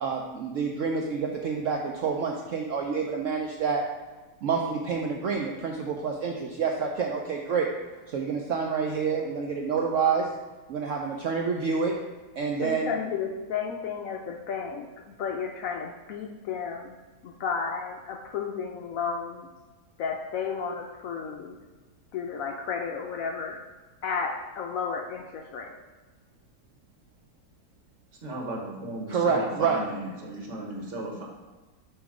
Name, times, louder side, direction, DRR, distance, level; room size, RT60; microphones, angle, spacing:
voice 1, 0.0-3.8 4.4-7.7 8.1-10.3 10.7-11.9 12.4-12.9 29.1-29.8, right 5 dB, 70° right, 1 dB, 0.7 m, -28 dB
voice 2, 12.6-14.9 15.2-16.9 17.2-19.5 20.0-21.6 22.1-23.6 24.0-25.7, left 6 dB, 70° left, 2 dB, 0.8 m, -32 dB
voice 3, 28.2-31.2, right 1 dB, 50° right, -1 dB, 1.3 m, -35 dB
7.3 x 3.0 x 4.8 m, 1.3 s
omnidirectional pair, 1.8 m